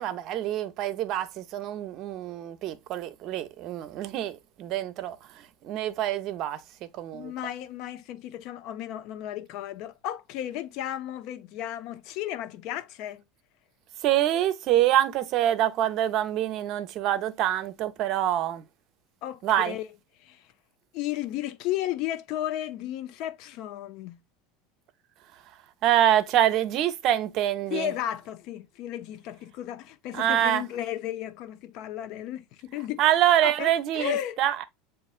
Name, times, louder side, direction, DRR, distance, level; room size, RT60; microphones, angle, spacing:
voice 1, 0.0-7.3 14.0-18.7 19.4-19.8 25.8-27.9 30.1-30.6 33.0-34.6, right 12 dB, 50° right, 0.6 m, -26 dB
voice 2, 7.1-13.2 19.2-19.9 20.2-20.4 20.9-24.2 27.7-33.0 33.4-34.4, left 12 dB, 60° left, 0.5 m, -34 dB
7.3 x 2.5 x 2.4 m
supercardioid pair, 115°, 0 cm